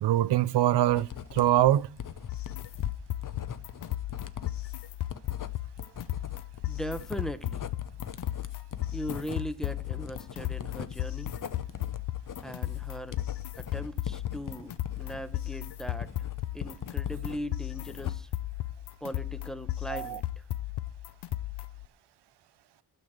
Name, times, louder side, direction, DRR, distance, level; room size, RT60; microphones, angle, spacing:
voice 1, 0.0-1.9 19.9-20.2, right 13 dB, 85° right, 0.6 m, -24 dB
Writing, 0.9-17.4 17.7-18.4, left 8 dB, 50° left, 0.9 m, -41 dB
sound 1, 2.3-21.9, left 14 dB, 80° left, 0.6 m, -35 dB
voice 2, 6.7-7.6 8.9-11.3 12.4-13.2 13.6-16.1 16.5-18.3 19.0-20.4, equal, ahead, 0.8 m, -39 dB
12.0 x 6.6 x 7.9 m
wide cardioid pair, 110°, 40 cm